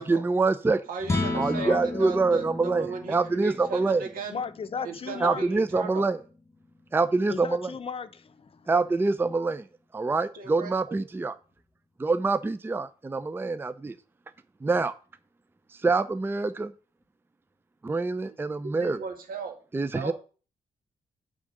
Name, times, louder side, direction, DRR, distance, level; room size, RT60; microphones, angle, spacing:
voice 1, 0.0-0.8 1.3-4.0 5.2-6.2 6.9-7.7 8.7-9.6 9.9-11.3 12.0-14.0 14.6-14.9 15.8-16.7 17.8-19.0 19.7-20.1, right 3 dB, 15° right, 0.5 m, -25 dB
voice 2, 0.9-4.4 4.8-6.1 10.3-11.0 18.3-18.4 18.6-19.6 19.9-20.1, right 4 dB, 80° right, 2.2 m, -36 dB
sound 1, 1.0-7.4, left 2 dB, 20° left, 1.9 m, -35 dB
voice 3, 1.5-2.1 4.3-5.5 7.3-8.7, left 6 dB, 40° left, 0.7 m, -36 dB
8.5 x 3.7 x 6.5 m
cardioid pair, 85°, 14 cm